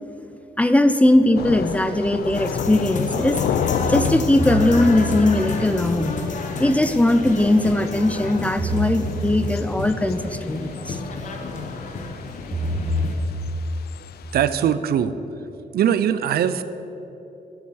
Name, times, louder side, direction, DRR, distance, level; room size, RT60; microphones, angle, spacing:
voice 1, 0.6-3.4 3.9-6.2 6.6-11.0, left 1 dB, 10° left, 10 dB, 0.4 m, -19 dB
sound 1, 1.2-1.3 3.8-5.4 8.6-9.7 12.5-13.8, right 1 dB, 30° right, 1.7 m, -27 dB
Thunder / Rain, 1.4-14.7, left 8 dB, 75° left, 0.5 m, -32 dB
sound 2, 2.3-13.2, left 4 dB, 50° left, 1.1 m, -31 dB
voice 2, 14.3-15.1 15.7-16.6, right 9 dB, 75° right, 13 dB, 0.5 m, -21 dB
12.0 x 7.2 x 6.3 m, 3.0 s
wide cardioid pair, 155°, 16 cm